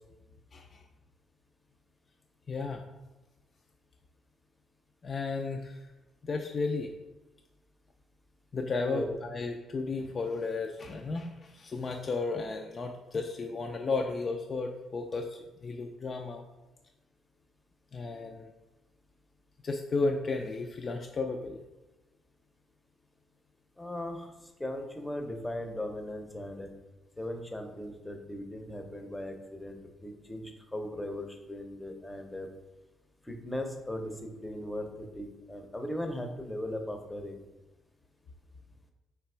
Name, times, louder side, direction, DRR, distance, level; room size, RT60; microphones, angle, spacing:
voice 1, 2.5-2.8 5.0-5.8 6.2-6.9 8.5-16.4 17.9-18.5 19.6-21.6, left 3 dB, 45° left, 3 dB, 0.4 m, -33 dB
voice 2, 8.8-9.1 23.8-24.3 24.6-26.7 27.2-32.5 33.2-37.4, left 1 dB, 10° left, 4 dB, 0.6 m, -38 dB
3.4 x 2.9 x 4.3 m, 1.0 s
cardioid pair, 90°, 0 cm